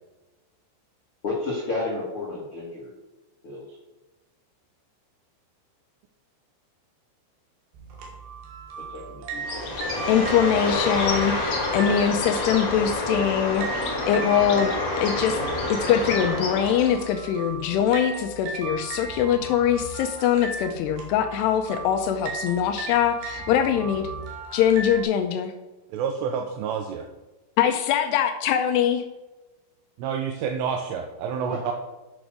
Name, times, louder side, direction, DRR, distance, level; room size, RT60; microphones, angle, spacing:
voice 1, 1.2-2.9 3.4-3.8 8.9-9.8 31.5-31.6, left 2 dB, 75° left, -4 dB, 1.2 m, -32 dB
sound 1, 7.7-25.0, right 4 dB, 65° right, 3.7 m, -37 dB
Bird, 9.4-17.1, left 2 dB, 45° left, 1.4 m, -28 dB
voice 2, 10.1-14.7 15.0-15.4 15.7-24.1 24.5-25.5 27.6-29.0, left 9 dB, 90° left, 6 dB, 2.3 m, -23 dB
voice 3, 25.9-27.1 30.0-31.7, right 7 dB, 85° right, 5 dB, 2.5 m, -28 dB
9.6 x 6.2 x 6.2 m, 1.1 s
omnidirectional pair, 5.6 m